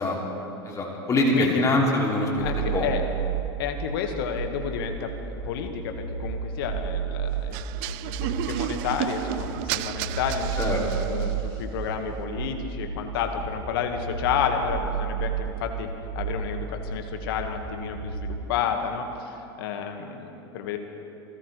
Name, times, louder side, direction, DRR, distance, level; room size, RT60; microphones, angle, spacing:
voice 1, 0.0-0.5 1.3-1.6 2.4-3.0 3.6-15.9 16.1-20.8, left 7 dB, 65° left, 5 dB, 1.6 m, -31 dB
voice 2, 0.6-2.9 10.6-10.8 11.2-11.4, left 2 dB, 25° left, -1 dB, 2.7 m, -24 dB
sound 1, 2.4-18.4, right 7 dB, 75° right, 3.2 m, -32 dB
sound 2, 7.5-11.5, right 16 dB, 50° right, 0.4 m, -32 dB
28.0 x 13.5 x 3.3 m, 2.9 s
hypercardioid pair, 90°, 14 cm